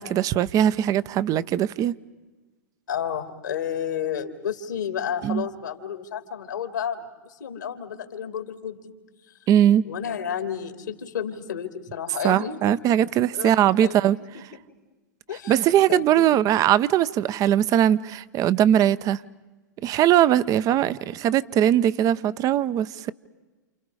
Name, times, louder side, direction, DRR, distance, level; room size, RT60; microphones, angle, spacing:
voice 1, 0.0-2.0 5.2-5.5 9.5-9.8 12.2-14.2 15.5-19.2 19.8-23.1, right 11 dB, 35° right, 0.8 m, -20 dB
voice 2, 2.9-8.9 9.8-12.8 13.3-13.5 13.8-14.1 15.3-15.6 15.9-16.5, left 8 dB, 85° left, 2.8 m, -31 dB
29.5 x 29.0 x 4.9 m
hypercardioid pair, 105°, 10 cm